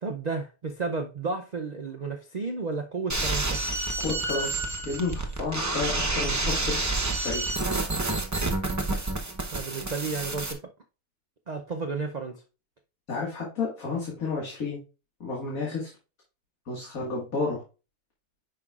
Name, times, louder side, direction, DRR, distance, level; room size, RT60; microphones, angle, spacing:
voice 1, 0.0-3.6 9.5-10.7 11.5-12.4, right 4 dB, 70° right, 0.4 m, -32 dB
sound 1, 3.1-10.5, right 2 dB, 20° right, 0.5 m, -29 dB
voice 2, 4.0-7.6 13.1-14.8 15.2-15.9 16.7-17.6, left 4 dB, 70° left, 2.3 m, -31 dB
9.7 x 5.5 x 2.4 m
omnidirectional pair, 1.6 m